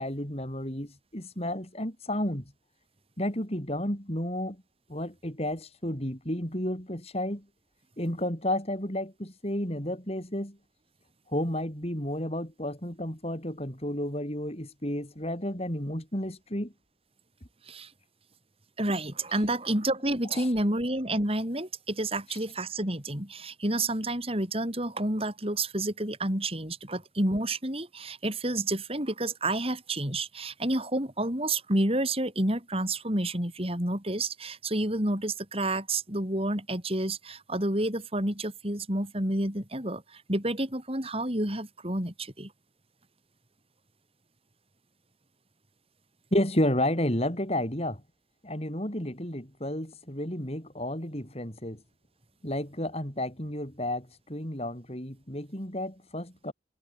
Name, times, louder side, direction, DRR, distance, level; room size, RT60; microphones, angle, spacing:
voice 1, 0.0-2.4 3.2-4.6 4.9-7.4 8.0-10.6 11.3-16.7 19.3-19.4 20.3-20.5 22.3-22.4 46.3-48.0 48.4-51.8 52.4-56.5, left 1 dB, 35° left, 6.4 m, -32 dB
voice 2, 18.8-42.5, right 1 dB, 35° right, 6.3 m, -29 dB
head